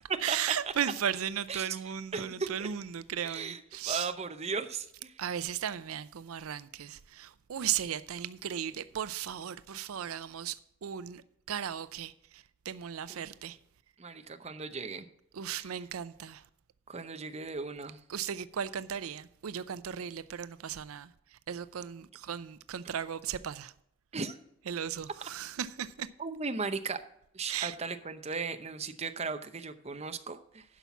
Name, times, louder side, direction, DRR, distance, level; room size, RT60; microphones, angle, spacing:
voice 1, 0.2-4.1 5.2-11.2 11.5-13.6 15.3-16.4 18.1-21.1 21.5-23.7 24.7-26.1 27.5-27.8, right 9 dB, 90° right, 0.5 m, -36 dB
voice 2, 2.1-2.7 3.2-3.6 3.8-5.1 13.1-13.2 14.0-15.1 15.6-15.7 16.9-18.0 24.1-24.4 26.2-27.0 27.3-30.6, right 4 dB, 30° right, 0.7 m, -37 dB
11.0 x 5.8 x 5.9 m
head